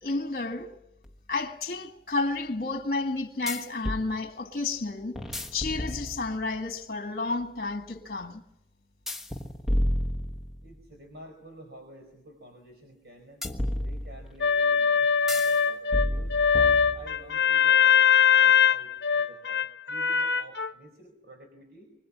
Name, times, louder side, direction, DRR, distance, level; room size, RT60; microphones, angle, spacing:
voice 1, 0.0-0.7 1.3-8.4, left 3 dB, 50° left, 1.8 m, -31 dB
sound 1, 1.0-1.1 3.5-4.1 5.2-6.5 9.1-10.8 13.4-14.4 15.3-15.6 15.9-17.3, left 1 dB, ahead, 1.3 m, -31 dB
voice 2, 10.6-13.4 13.8-16.4 16.9-21.9, right 1 dB, 65° right, 4.9 m, -50 dB
sound 2, 14.4-20.7, left 7 dB, 75° left, 0.8 m, -22 dB
25.0 x 20.0 x 8.6 m
head